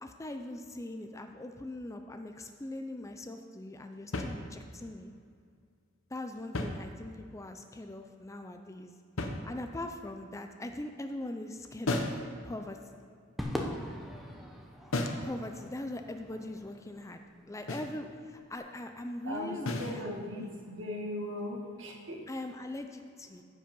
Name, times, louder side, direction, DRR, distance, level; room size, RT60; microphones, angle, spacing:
voice 1, 0.0-5.1 6.1-8.9 9.2-12.1 12.4-13.0 15.2-17.2 17.5-19.9 20.3-20.5 22.3-23.4, left 1 dB, 15° left, 6 dB, 0.5 m, -41 dB
sound 1, 4.1-4.9 6.3-7.4 9.2-9.9 11.8-12.3 14.9-15.3 17.7-18.0 19.6-20.0, left 2 dB, 85° left, 1.0 m, -35 dB
Crowd / Fireworks, 13.4-17.9, equal, ahead, 0.9 m, -41 dB
voice 2, 19.2-22.3, left 1 dB, 65° right, 0 dB, 1.8 m, -38 dB
14.5 x 5.2 x 5.4 m, 2.2 s
head